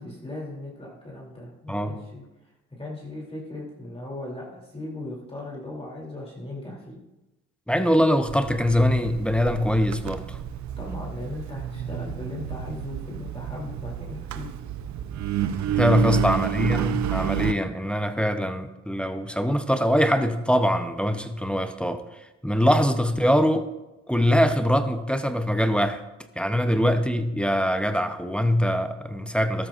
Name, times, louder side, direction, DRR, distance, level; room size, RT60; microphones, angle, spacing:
voice 1, 0.0-2.2 2.8-7.0 10.8-14.5 15.9-16.4, left 2 dB, 20° left, -3 dB, 2.9 m, -38 dB
voice 2, 7.7-10.4 15.8-22.0 22.4-23.7 24.1-26.0 26.4-29.7, equal, 5° left, 8 dB, 0.7 m, -23 dB
Engine, 8.3-17.5, right 11 dB, 65° right, 0.7 m, -30 dB
13.0 x 13.0 x 2.5 m, 1.0 s
cardioid pair, 90°, 30 cm